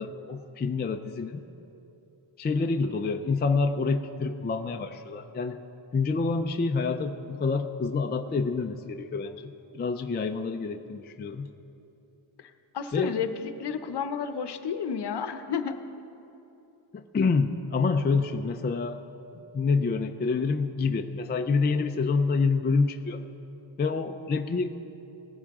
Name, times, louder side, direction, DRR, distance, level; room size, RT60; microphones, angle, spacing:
voice 1, 0.0-1.5 2.4-5.6 5.9-11.5 12.9-13.1 16.9-19.0 19.5-23.2 23.8-24.8, left 4 dB, 25° left, 6 dB, 0.3 m, -27 dB
voice 2, 12.4-15.8, left 7 dB, 55° left, 9 dB, 0.8 m, -31 dB
18.0 x 15.5 x 3.6 m, 2.9 s
wide cardioid pair, 160°, 49 cm